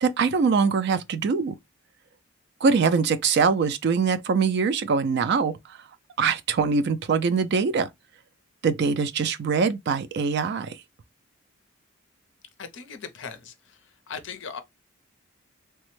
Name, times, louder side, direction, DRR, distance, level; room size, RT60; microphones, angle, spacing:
voice 1, 0.0-1.5 2.6-5.8 6.2-7.9 8.6-10.8, right 5 dB, 50° right, 0.3 m, -23 dB
voice 2, 12.6-13.8 14.1-14.6, left 5 dB, 60° left, 0.5 m, -38 dB
3.2 x 2.1 x 3.0 m
head